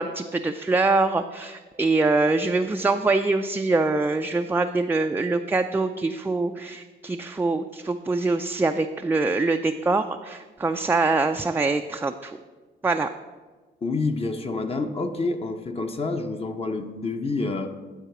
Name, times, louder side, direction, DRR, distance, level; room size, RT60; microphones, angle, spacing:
voice 1, 0.0-12.4 12.8-13.1, right 3 dB, 10° right, 6 dB, 0.3 m, -24 dB
voice 2, 13.8-17.7, left 3 dB, 30° left, 6 dB, 0.7 m, -28 dB
11.0 x 3.9 x 5.9 m, 1.3 s
cardioid pair, 90°, 20 cm